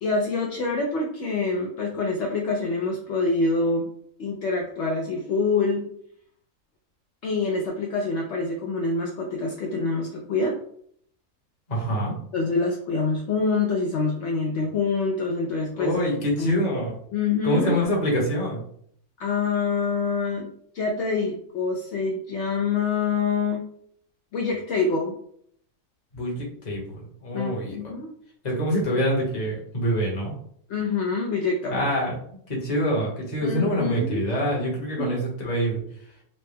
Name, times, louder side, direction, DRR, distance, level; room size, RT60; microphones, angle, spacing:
voice 1, 0.0-3.9 4.2-5.9 7.2-10.6 12.3-16.0 16.4-16.7 17.1-17.7 19.2-20.5 20.7-23.7 24.3-25.1 27.3-28.1 30.7-31.8 33.4-34.3 35.0-35.2, left 4 dB, 65° left, 0 dB, 0.7 m, -26 dB
voice 2, 11.7-12.1 15.8-16.9 17.4-18.6 26.1-27.8 28.4-30.3 31.7-32.2 32.5-35.8, equal, 30° left, -2 dB, 1.0 m, -25 dB
4.0 x 2.1 x 3.3 m, 0.65 s
omnidirectional pair, 1.7 m